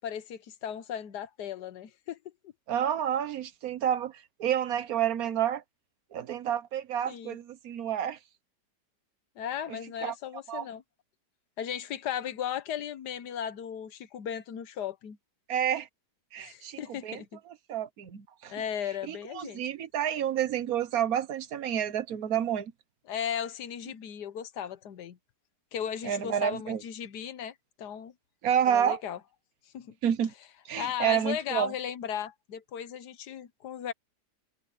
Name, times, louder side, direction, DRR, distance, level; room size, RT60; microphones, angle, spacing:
voice 1, 0.0-2.3 7.1-7.4 9.4-10.8 11.6-15.2 16.4-17.4 18.5-19.6 23.1-25.2 25.7-28.1 28.7-29.2 29.7-30.0 30.8-33.9, left 9 dB, 75° left, 1.5 m, -36 dB
voice 2, 2.7-5.6 6.1-8.2 9.7-10.1 10.5-10.7 15.5-15.9 16.3-18.5 19.1-22.7 26.0-26.8 28.4-29.0 30.0-30.3 30.7-31.7, right 9 dB, 65° right, 1.5 m, -29 dB
omnidirectional pair, 1.8 m